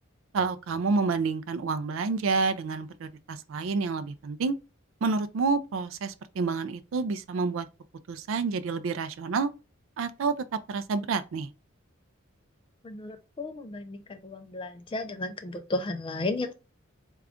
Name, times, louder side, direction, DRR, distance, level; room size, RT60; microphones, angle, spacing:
voice 1, 0.3-4.6 5.0-7.7 8.1-9.5 10.0-10.3 10.7-11.5, right 4 dB, 70° right, 0.4 m, -29 dB
voice 2, 12.8-16.5, left 2 dB, 25° left, 0.3 m, -34 dB
3.7 x 2.3 x 3.4 m
head